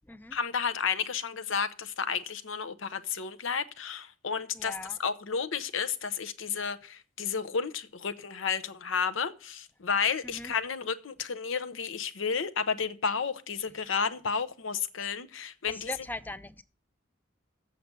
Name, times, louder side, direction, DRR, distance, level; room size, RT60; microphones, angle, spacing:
voice 1, 0.3-4.7 5.0-15.9, left 6 dB, 80° left, 0.8 m, -32 dB
voice 2, 4.5-5.0 10.2-10.5 15.7-16.6, left 1 dB, 10° left, 0.4 m, -40 dB
7.7 x 6.6 x 8.2 m
head